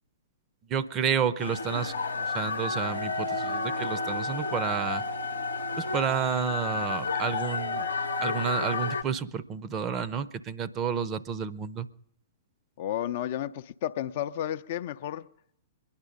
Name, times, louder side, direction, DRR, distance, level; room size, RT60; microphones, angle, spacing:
voice 1, 0.7-5.0 5.8-7.9 8.2-11.9, right 7 dB, 25° right, 0.6 m, -30 dB
sound 1, 1.4-9.0, left 3 dB, 75° left, 0.8 m, -31 dB
voice 2, 12.8-15.3, left 11 dB, 50° left, 0.5 m, -32 dB
22.5 x 10.5 x 5.2 m
figure-of-eight pair, 110°, 0 cm